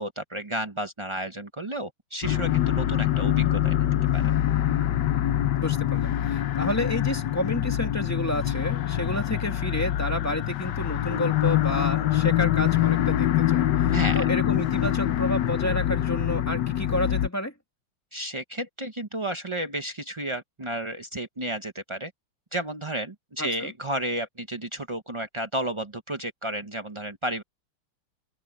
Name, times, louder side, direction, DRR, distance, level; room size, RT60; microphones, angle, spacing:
voice 1, 0.0-4.2 13.9-14.3 18.1-22.1 22.5-27.4, right 1 dB, 45° right, 0.3 m, -32 dB
sound 1, 2.2-17.3, left 12 dB, 65° left, 1.2 m, -24 dB
voice 2, 5.6-17.5 23.4-23.7, left 1 dB, 5° left, 2.3 m, -30 dB
open air
omnidirectional pair, 2.4 m